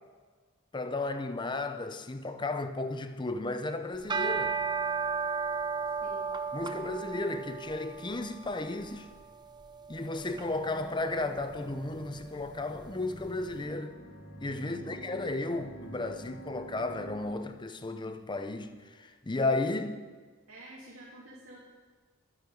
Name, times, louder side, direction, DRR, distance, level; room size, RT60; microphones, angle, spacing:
voice 1, 0.7-4.6 6.5-9.1 9.9-13.9 14.4-20.0, left 2 dB, 20° left, 0.6 m, -34 dB
sound 1, 3.9-13.3, right 5 dB, 20° right, 0.5 m, -36 dB
voice 2, 5.8-6.3 14.6-15.0 20.5-21.6, right 1 dB, 70° right, 2.9 m, -50 dB
sound 2, 10.3-17.2, right 1 dB, 80° left, 3.2 m, -48 dB
12.0 x 9.9 x 5.2 m
head